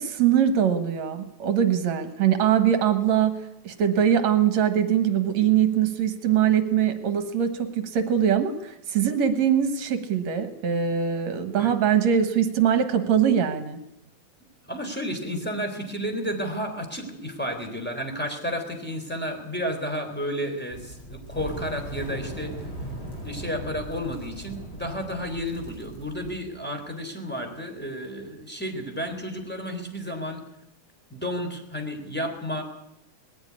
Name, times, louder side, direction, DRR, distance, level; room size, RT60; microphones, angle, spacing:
voice 1, 0.0-13.8, right 9 dB, 70° right, 9 dB, 2.5 m, -22 dB
voice 2, 14.7-22.5 23.2-30.4 31.1-32.6, equal, 5° left, 4 dB, 3.5 m, -32 dB
sound 1, 20.7-26.4, right 1 dB, 30° left, 5.3 m, -38 dB
20.0 x 15.5 x 9.7 m, 0.82 s
omnidirectional pair, 3.3 m